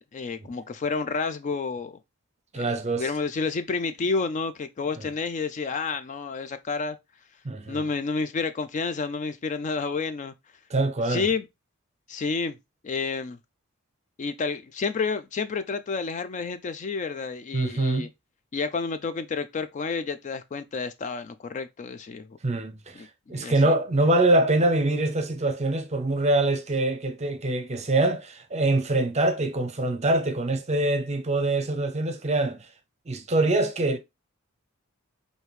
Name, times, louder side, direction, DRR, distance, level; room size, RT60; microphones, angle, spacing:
voice 1, 0.1-2.0 2.5-7.0 7.7-10.3 11.1-11.5 12.1-12.6 12.8-13.4 14.2-18.1 18.5-22.3 22.9-23.7, left 4 dB, 35° left, 0.4 m, -30 dB
voice 2, 2.5-3.1 5.0-5.1 7.4-7.8 10.7-11.3 17.5-18.1 22.4-32.6 33.1-34.0, right 2 dB, 30° right, 0.7 m, -24 dB
4.9 x 2.7 x 3.0 m
head